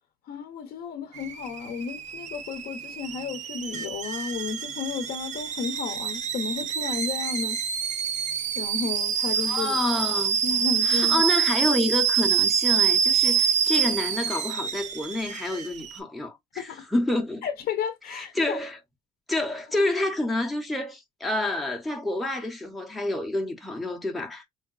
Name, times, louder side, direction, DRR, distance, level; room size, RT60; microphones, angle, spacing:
voice 1, 0.3-7.6 8.6-9.8 10.4-11.2 16.6-16.9 17.4-18.6 19.7-19.9, left 6 dB, 60° left, 0.6 m, -33 dB
Alarm / Boiling, 1.2-16.0, right 7 dB, 45° right, 0.5 m, -26 dB
voice 2, 9.4-10.4 10.8-17.4 18.1-18.8 19.3-24.5, left 2 dB, ahead, 0.6 m, -28 dB
3.8 x 2.2 x 2.3 m
cardioid pair, 110°, 17 cm